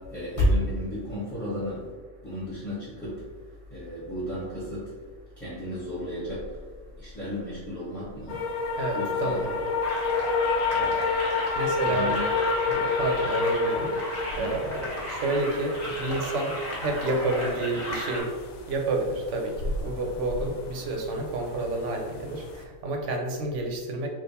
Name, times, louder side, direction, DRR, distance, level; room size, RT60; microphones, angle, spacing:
voice 1, 0.0-9.5 10.7-11.1 11.4-11.5 11.8-12.2 14.4-14.5, equal, ahead, -10 dB, 1.1 m, -32 dB
sound 1, 8.3-22.6, left 4 dB, 90° left, 1.1 m, -30 dB
voice 2, 8.8-9.6 11.5-12.1 12.6-18.3 18.7-24.1, right 2 dB, 65° right, 2 dB, 1.0 m, -30 dB
sound 2, 9.8-18.2, left 1 dB, 35° left, 1.4 m, -35 dB
3.7 x 2.4 x 4.1 m, 1.5 s
omnidirectional pair, 1.4 m